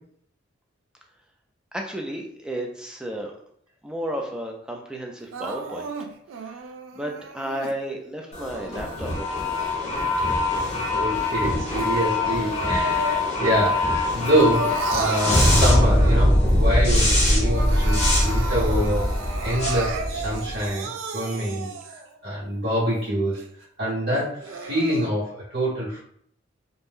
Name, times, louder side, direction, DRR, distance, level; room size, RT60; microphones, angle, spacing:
voice 1, 1.7-3.4 3.8-5.9 6.4-6.6 7.0-9.6, right 1 dB, 5° right, 1 dB, 0.3 m, -33 dB
Crying sobbing, 5.3-7.7 8.4-10.2 10.6-13.5 13.8-16.5 16.9-17.0 17.3-22.2 22.7-22.8 23.3-23.4 24.2-25.1, right 4 dB, 85° right, 0.4 m, -34 dB
sound 1, 8.3-20.7, left 1 dB, 35° left, 0.8 m, -22 dB
voice 2, 10.9-19.1 19.4-20.9 21.1-21.7 22.2-23.4 23.8-26.0, equal, 65° right, -8 dB, 1.3 m, -25 dB
2.5 x 2.2 x 3.5 m, 0.65 s
head